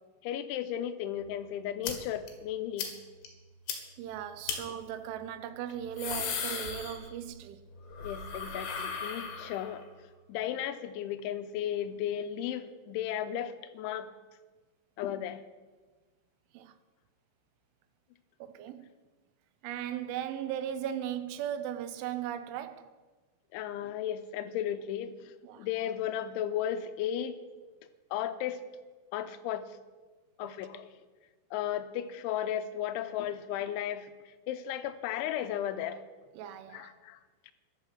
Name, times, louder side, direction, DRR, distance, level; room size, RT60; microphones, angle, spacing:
voice 1, 0.2-2.9 8.0-9.8 10.3-14.1 15.0-15.4 23.5-25.3 25.6-27.4 28.1-28.6 29.1-29.6 30.4-30.9 31.5-36.0 36.7-37.2, left 10 dB, 90° left, 3.1 m, -35 dB
sound 1, 1.8-1.9 2.3-2.4 2.8-2.9 3.3-3.4 3.7-3.8 4.5-4.6 5.7-7.4 7.7-9.8, left 6 dB, 70° left, 3.9 m, -36 dB
voice 2, 4.0-7.6 16.5-16.7 18.4-18.9 19.6-22.9 25.4-25.7 30.4-30.5 36.3-36.9, right 10 dB, 85° right, 3.3 m, -37 dB
14.5 x 11.5 x 6.1 m
omnidirectional pair, 5.4 m